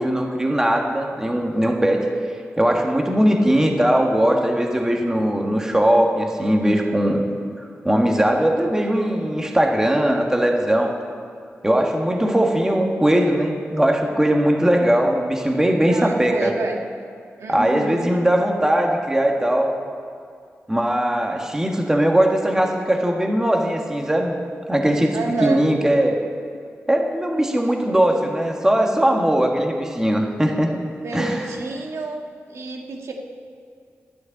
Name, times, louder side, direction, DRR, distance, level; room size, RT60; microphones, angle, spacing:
voice 1, 0.0-2.0 2.6-7.3 7.8-10.9 11.6-16.5 17.5-19.7 20.7-24.3 24.7-26.2 26.9-30.8 31.1-31.4, right 1 dB, 10° right, 1 dB, 1.5 m, -19 dB
voice 2, 15.9-16.8 17.4-18.1 25.1-25.6 31.0-32.2 32.5-33.1, right 3 dB, 90° right, 1 dB, 1.5 m, -28 dB
13.0 x 6.4 x 9.6 m, 2.3 s
wide cardioid pair, 90°, 5 cm